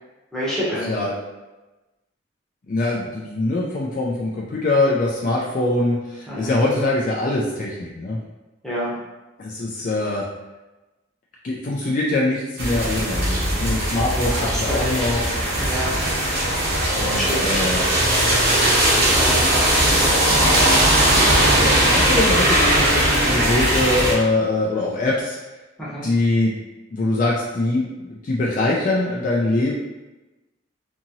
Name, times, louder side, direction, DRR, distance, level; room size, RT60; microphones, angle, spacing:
voice 1, 0.3-1.0 6.3-6.5 8.6-9.0 14.2-15.1 15.6-16.0 17.1-17.9 18.3-19.7 25.8-26.1, equal, 5° left, -9 dB, 0.8 m, -28 dB
voice 2, 2.7-8.2 9.4-10.2 11.4-15.2 17.0-17.8 21.0-21.3 21.6-25.4 26.0-26.5 26.9-29.7, left 2 dB, 40° left, -4 dB, 0.4 m, -23 dB
sound 1, 12.6-24.1, right 1 dB, 50° right, 0.8 m, -19 dB
2.8 x 2.7 x 2.6 m, 1.1 s
head